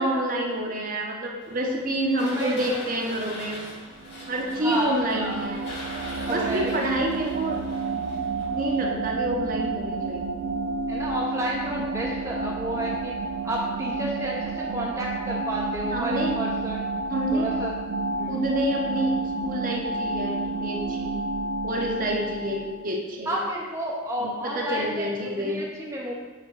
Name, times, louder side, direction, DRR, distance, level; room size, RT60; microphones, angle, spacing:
voice 1, 0.0-3.7 4.3-5.6 6.3-7.6 8.5-10.3 15.9-16.3 17.1-17.5 18.3-21.2 21.6-23.4 24.2-25.6, right 1 dB, 40° right, 0 dB, 0.8 m, -28 dB
sound 1, 1.4-9.0, left 1 dB, 55° left, 2.0 m, -41 dB
voice 2, 2.3-2.8 4.6-5.4 6.2-6.9 10.9-13.1 13.4-16.8 17.3-17.8 18.2-18.4 23.3-26.1, equal, 15° right, -4 dB, 0.6 m, -31 dB
sound 2, 3.9-22.8, right 3 dB, 65° right, 0.4 m, -30 dB
6.7 x 3.5 x 4.7 m, 1.4 s
head